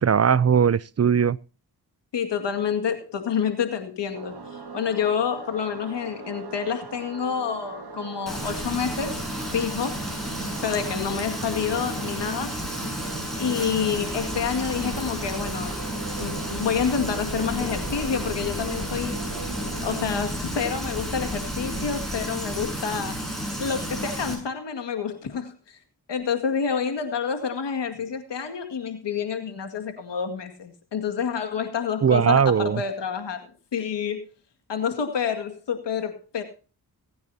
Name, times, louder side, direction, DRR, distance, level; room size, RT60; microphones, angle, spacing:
voice 1, 0.0-1.4 32.0-32.8, right 7 dB, 40° right, 0.5 m, -19 dB
voice 2, 2.1-9.2 9.5-12.6 13.4-15.8 16.2-19.2 19.8-25.8 26.1-33.4 33.7-34.3 34.7-36.4, left 7 dB, 85° left, 2.2 m, -28 dB
sound 1, 4.1-20.1, right 5 dB, 65° right, 2.1 m, -40 dB
Frying (food), 8.3-24.3, equal, ahead, 7.5 m, -32 dB
sound 2, 14.1-22.3, left 1 dB, 35° left, 5.2 m, -39 dB
23.5 x 9.4 x 2.8 m
cardioid pair, 45°, 41 cm